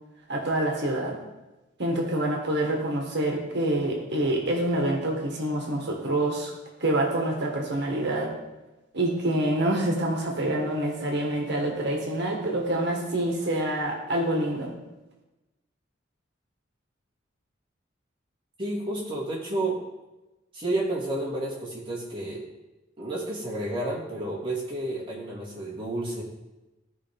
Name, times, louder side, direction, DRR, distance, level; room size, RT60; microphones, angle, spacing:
voice 1, 0.3-1.1 1.8-6.5 6.8-8.3 8.9-14.7, right 1 dB, 60° right, 0 dB, 1.7 m, -26 dB
voice 2, 18.6-19.8 20.5-22.4 23.0-26.2, right 1 dB, 25° right, -6 dB, 2.2 m, -31 dB
14.5 x 5.0 x 3.6 m, 1.1 s
head